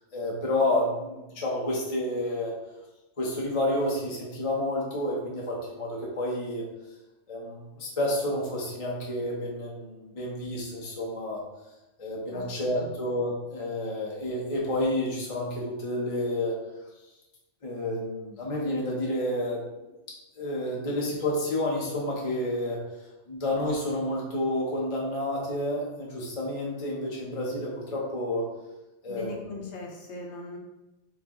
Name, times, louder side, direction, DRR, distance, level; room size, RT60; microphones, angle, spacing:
voice 1, 0.1-2.5 3.2-6.6 7.3-11.4 12.0-16.5 17.6-19.6 20.4-22.8 23.3-28.5 29.0-29.5, left 1 dB, 35° left, -4 dB, 0.8 m, -30 dB
voice 2, 29.1-30.6, left 2 dB, 75° left, 0 dB, 1.2 m, -40 dB
4.4 x 3.9 x 3.0 m, 1.0 s
omnidirectional pair, 1.2 m